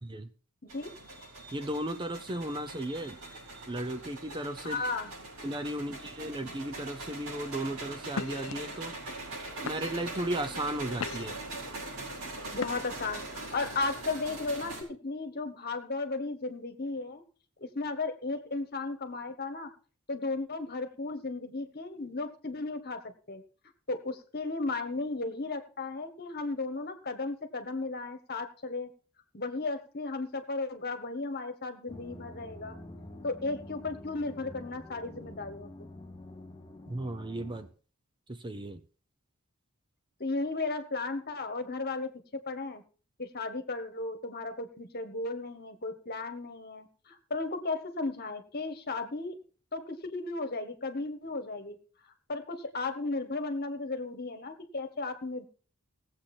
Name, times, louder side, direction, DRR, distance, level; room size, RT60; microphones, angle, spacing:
voice 1, 0.6-1.0 4.6-5.1 12.5-17.2 17.6-19.7 20.1-23.4 23.9-28.9 29.3-32.7 33.2-35.9 40.2-42.1 42.4-42.8 43.2-49.4 49.7-51.8 52.3-55.4, left 3 dB, 45° left, 8 dB, 1.4 m, -35 dB
sound 1, 0.7-14.8, right 2 dB, 70° right, 6.3 m, -42 dB
voice 2, 1.5-3.2 3.7-4.8 5.4-8.9 9.6-11.4 36.9-37.7 38.3-38.8, right 1 dB, 20° right, 10 dB, 0.6 m, -35 dB
sound 2, 8.1-8.5 9.2-9.3 9.7-10.1 10.7-11.5 12.5-13.1, left 5 dB, 70° left, 0.6 m, -38 dB
sound 3, 31.9-37.7, left 1 dB, 20° left, 2.3 m, -47 dB
18.0 x 7.8 x 4.4 m, 0.39 s
head